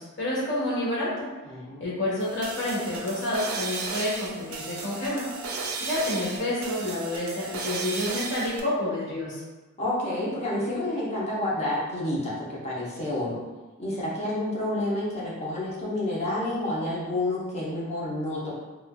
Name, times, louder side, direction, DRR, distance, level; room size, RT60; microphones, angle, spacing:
voice 1, 0.0-1.3 1.8-5.3 5.8-9.4, left 1 dB, 55° left, -7 dB, 1.4 m, -29 dB
voice 2, 1.5-2.0 9.8-13.4 13.8-18.5, left 1 dB, 30° left, -7 dB, 0.9 m, -29 dB
sound 1, 2.2-8.6, right 3 dB, 75° right, 0.5 m, -35 dB
4.0 x 2.5 x 2.4 m, 1.2 s
head